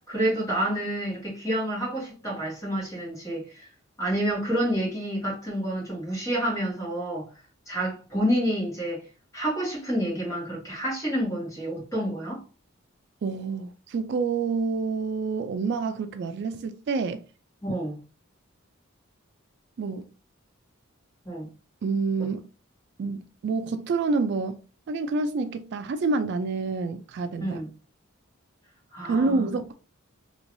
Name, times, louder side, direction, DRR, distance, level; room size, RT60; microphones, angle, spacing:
voice 1, 0.0-3.7 4.0-7.3 7.7-9.0 9.3-12.4 17.6-18.0 21.2-21.5 27.4-27.7 28.9-29.5, right 1 dB, 15° left, 1.6 m, -28 dB
voice 2, 13.2-17.2 19.8-20.1 21.8-22.5 23.0-27.6 29.1-29.7, right 4 dB, 55° right, 0.3 m, -28 dB
3.1 x 3.0 x 2.6 m
head